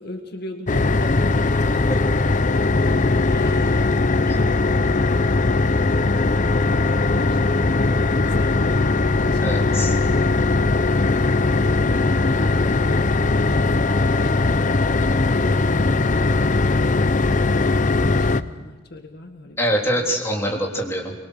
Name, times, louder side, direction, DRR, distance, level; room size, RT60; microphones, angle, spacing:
voice 1, 0.0-1.9 2.6-6.1 6.4-10.0 12.6-14.8 15.3-16.2 17.1-19.6 20.0-20.1, left 1 dB, 60° left, 5 dB, 1.9 m, -38 dB
sound 1, 0.7-18.4, left 3 dB, 45° left, 0.6 m, -19 dB
voice 2, 9.4-9.9 19.6-21.1, equal, 15° left, -1 dB, 3.5 m, -24 dB
24.0 x 23.0 x 6.4 m, 1.3 s
head